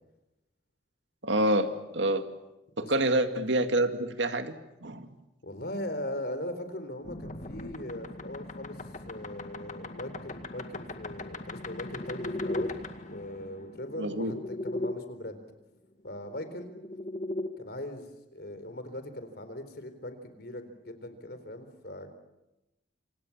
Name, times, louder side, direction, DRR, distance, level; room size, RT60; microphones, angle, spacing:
voice 1, 1.2-2.2 2.9-5.1 14.0-14.3, right 1 dB, 80° right, 7 dB, 2.2 m, -27 dB
voice 2, 5.4-15.4 16.0-16.7 17.6-18.1 18.3-22.1, left 1 dB, 60° left, 9 dB, 4.1 m, -40 dB
sound 1, 7.0-14.9 16.2-17.5, left 1 dB, 40° left, 2.1 m, -38 dB
27.5 x 27.0 x 7.4 m, 0.96 s
head